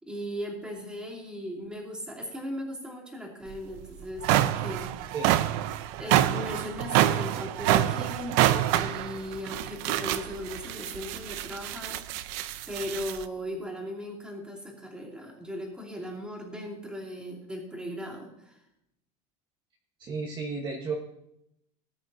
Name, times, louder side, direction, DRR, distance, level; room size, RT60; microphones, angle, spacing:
voice 1, 0.0-4.9 6.0-12.3 12.7-18.6, left 1 dB, 5° right, -3 dB, 2.7 m, -38 dB
sound 1, 3.5-3.6 4.0-13.2, right 13 dB, 55° right, 0.6 m, -27 dB
voice 2, 20.0-20.9, right 4 dB, 25° right, -1 dB, 1.2 m, -33 dB
19.5 x 9.4 x 2.7 m, 0.80 s
supercardioid pair, 165°, 20 cm